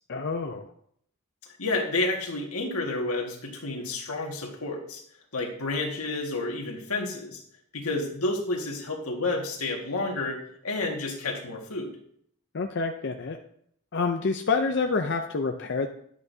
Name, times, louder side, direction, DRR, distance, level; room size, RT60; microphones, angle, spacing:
voice 1, 0.1-0.7 12.5-13.4 13.9-15.9, left 4 dB, 55° left, 5 dB, 0.5 m, -27 dB
voice 2, 1.6-5.0 5.3-7.4 7.7-11.9, left 2 dB, 85° left, 1 dB, 1.8 m, -30 dB
11.0 x 8.1 x 2.7 m, 0.67 s
head